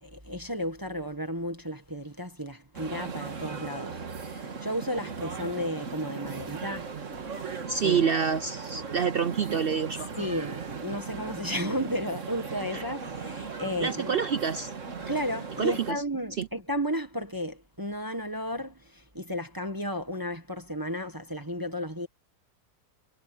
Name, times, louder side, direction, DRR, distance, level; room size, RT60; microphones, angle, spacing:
voice 1, 0.0-6.9 7.3-8.1 10.2-14.1 15.0-22.1, equal, 10° right, 1.6 m, -33 dB
sound 1, 2.7-15.9, right 5 dB, 45° right, 1.9 m, -38 dB
voice 2, 7.7-10.1 12.7-12.8 13.8-14.7 15.6-16.0 16.4-16.5, right 6 dB, 85° right, 0.5 m, -27 dB
omnidirectional pair, 1.8 m